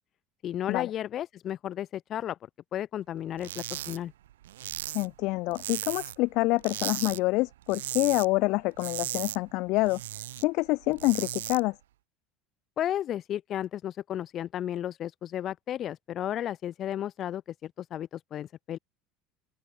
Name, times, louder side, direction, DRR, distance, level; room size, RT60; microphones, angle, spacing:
voice 1, 0.4-2.4 2.7-4.1 12.8-18.8, left 11 dB, 45° left, 1.6 m, -33 dB
sound 1, 3.4-4.0 4.3-6.3 6.6-7.2 7.5-8.3 8.6-10.4 10.8-11.6, right 14 dB, 90° right, 5.3 m, -36 dB
voice 2, 4.9-10.0 10.4-11.7, left 23 dB, 65° left, 0.8 m, -27 dB
open air
supercardioid pair, 95°, 0 cm